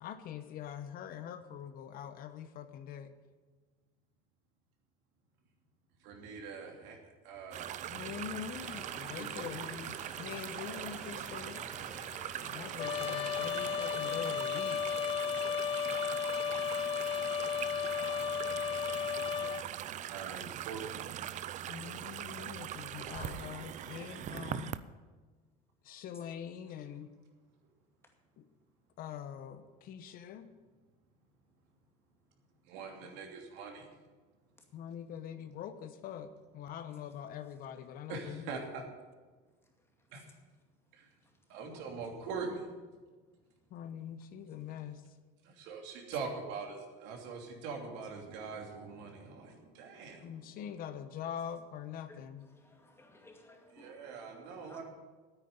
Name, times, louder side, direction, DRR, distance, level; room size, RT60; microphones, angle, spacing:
voice 1, 0.0-3.1 7.9-11.6 12.4-14.8 21.6-24.8 25.8-27.1 28.4-28.5 29.0-30.5 34.7-38.5 43.7-45.0 50.2-52.5, left 9 dB, 50° left, 10 dB, 1.0 m, -44 dB
voice 2, 6.0-7.7 9.2-9.7 10.6-11.1 11.7-12.1 12.9-13.2 13.6-13.9 19.8-21.0 22.8-23.5 32.6-33.9 38.1-38.8 40.1-40.3 40.9-41.1 41.5-42.7 45.4-50.4 53.7-54.8, right 5 dB, 70° right, 2 dB, 2.9 m, -44 dB
sound 1, 7.5-24.8, right 11 dB, 40° right, 0.6 m, -41 dB
sound 2, 8.5-14.3, equal, 5° right, 2.4 m, -51 dB
Trumpet, 12.8-19.7, left 8 dB, 30° left, 0.5 m, -34 dB
voice 3, 52.5-54.1 54.4-54.8, left 2 dB, 15° left, 3 dB, 2.2 m, -58 dB
9.5 x 9.2 x 9.6 m, 1.4 s
supercardioid pair, 125°, 19 cm